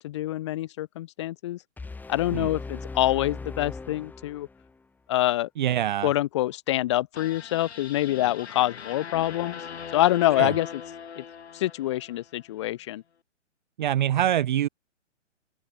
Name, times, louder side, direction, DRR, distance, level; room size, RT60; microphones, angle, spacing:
voice 1, 0.0-1.6 2.1-4.5 5.1-5.5 6.0-9.6 9.9-10.8 11.2-11.3 11.5-13.0, left 15 dB, 25° left, 0.6 m, -26 dB
sound 1, 1.8-4.8, left 3 dB, 5° left, 2.0 m, -39 dB
voice 2, 5.6-6.1 10.4-10.5 13.8-14.7, right 11 dB, 40° right, 1.0 m, -24 dB
sound 2, 7.1-12.4, left 7 dB, 60° left, 6.2 m, -40 dB
open air
figure-of-eight pair, 125°, 37 cm